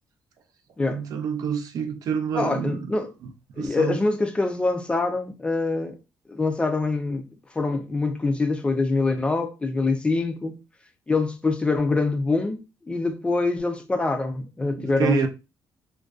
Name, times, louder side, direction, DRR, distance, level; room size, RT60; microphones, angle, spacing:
voice 1, 0.9-2.9 3.6-4.0 14.8-15.3, right 6 dB, 60° right, 0.4 m, -27 dB
voice 2, 2.3-3.1 3.6-6.0 6.3-7.3 7.5-10.6 11.1-12.6 12.9-15.3, left 3 dB, 15° left, 0.3 m, -24 dB
2.4 x 2.2 x 2.3 m
cardioid pair, 140°, 7 cm